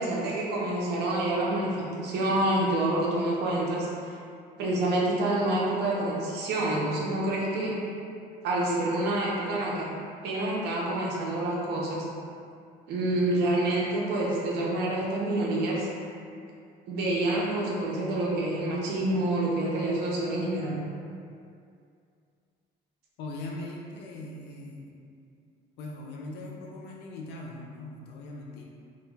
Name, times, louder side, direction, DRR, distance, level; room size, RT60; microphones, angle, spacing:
voice 1, 0.0-3.9 4.6-7.7 8.4-9.9 10.2-12.0 12.9-15.9 16.9-20.8, right 1 dB, 75° right, -4 dB, 0.6 m, -27 dB
voice 2, 23.2-25.0 25.8-28.6, left 2 dB, 85° left, -1 dB, 0.4 m, -40 dB
2.3 x 2.1 x 3.2 m, 2.4 s
cardioid pair, 110°, 17 cm